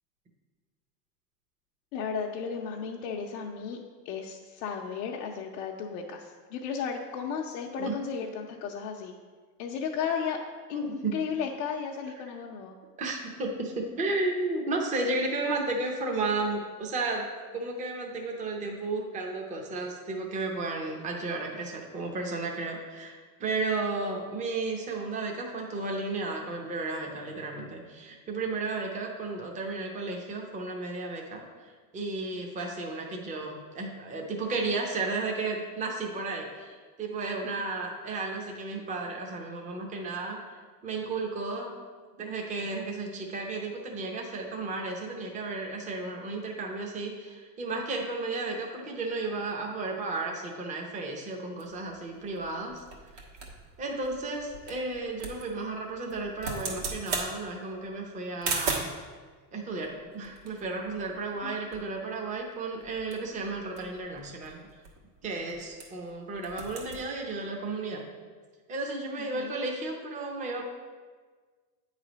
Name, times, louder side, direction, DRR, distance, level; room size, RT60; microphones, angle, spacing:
voice 1, 1.9-3.8 4.0-9.1 9.6-10.4 10.7-12.7 37.6-37.7 61.4-61.5 69.2-69.5, left 6 dB, 65° left, -1 dB, 0.7 m, -34 dB
voice 2, 10.7-11.2 13.0-17.3 17.5-23.1 23.4-40.4 40.8-41.7 42.2-52.8 53.1-53.2 53.8-58.9 59.5-64.6 65.2-68.1 68.7-70.6, right 3 dB, 15° right, 1 dB, 0.6 m, -33 dB
sound 1, 51.6-59.0 59.8-61.5 61.7-61.8 62.1-62.4 62.8-66.1 66.4-67.0, right 4 dB, 75° right, 1.6 m, -38 dB
8.5 x 3.3 x 5.0 m, 1.5 s
supercardioid pair, 145°, 47 cm